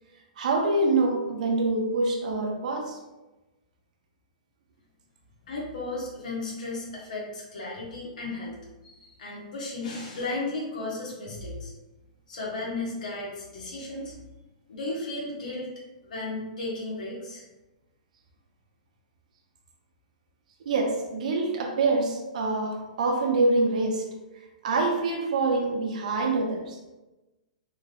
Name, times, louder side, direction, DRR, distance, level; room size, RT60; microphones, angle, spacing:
voice 1, 0.4-3.0 20.6-24.0 24.6-26.8, right 3 dB, 65° right, 2 dB, 0.8 m, -25 dB
voice 2, 5.5-11.7 12.3-14.1 14.7-15.7 16.0-17.4, left 2 dB, 75° left, -5 dB, 1.4 m, -34 dB
3.7 x 2.5 x 3.4 m, 1.1 s
hypercardioid pair, 165°, 4 cm